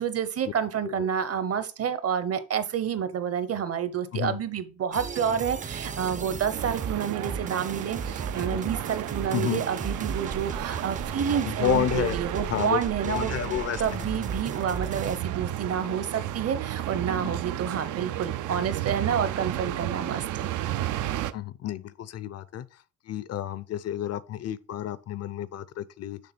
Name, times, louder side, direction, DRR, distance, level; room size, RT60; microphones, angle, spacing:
voice 1, 0.0-13.3 13.8-20.5, right 8 dB, 50° right, 0.9 m, -29 dB
sound 1, 4.9-15.2, right 5 dB, 25° right, 0.5 m, -36 dB
sound 2, 6.5-21.3, right 13 dB, 80° right, 0.5 m, -33 dB
voice 2, 9.3-9.6 11.4-12.2 12.5-14.2 17.2-17.4 21.3-22.7 23.1-26.2, left 11 dB, 55° left, 0.5 m, -30 dB
6.6 x 3.4 x 6.0 m
cardioid pair, 90°, 30 cm